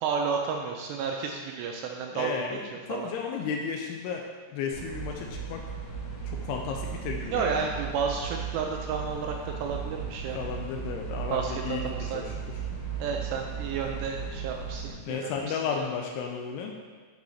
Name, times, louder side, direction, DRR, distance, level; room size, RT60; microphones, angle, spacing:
voice 1, 0.0-2.3 2.9-3.1 7.3-10.4 11.3-12.3 13.0-15.6, right 6 dB, 85° right, 2 dB, 2.5 m, -32 dB
voice 2, 2.1-5.6 6.2-7.6 10.4-11.8 12.1-12.6 15.1-16.7, left 6 dB, 90° left, 2 dB, 2.3 m, -34 dB
sound 1, 4.7-14.9, right 6 dB, 55° left, 2.6 m, -36 dB
10.5 x 4.7 x 3.2 m, 1.5 s
omnidirectional pair, 5.2 m